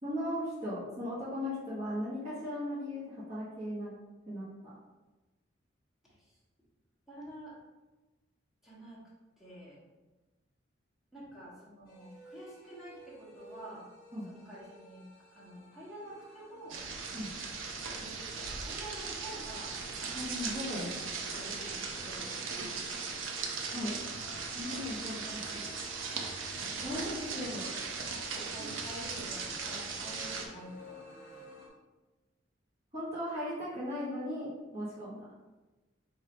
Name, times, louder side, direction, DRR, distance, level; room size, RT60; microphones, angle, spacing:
voice 1, 0.0-3.9 4.3-4.7 14.1-14.3 17.1-17.3 20.1-21.2 23.7-24.0 24.5-25.7 26.8-27.7 32.9-35.2, left 1 dB, 35° right, -11 dB, 1.3 m, -37 dB
voice 2, 7.1-7.5 8.6-9.0 9.4-9.8 11.1-13.9 14.3-15.0 15.3-16.8 17.9-19.7 21.3-23.2 26.8-27.5 28.3-31.4, right 1 dB, ahead, -8 dB, 1.4 m, -48 dB
sound 1, 11.9-31.7, left 1 dB, 50° left, 1.0 m, -53 dB
sound 2, 16.7-30.5, right 4 dB, 90° right, 0.6 m, -38 dB
3.5 x 2.7 x 4.4 m, 1.2 s
head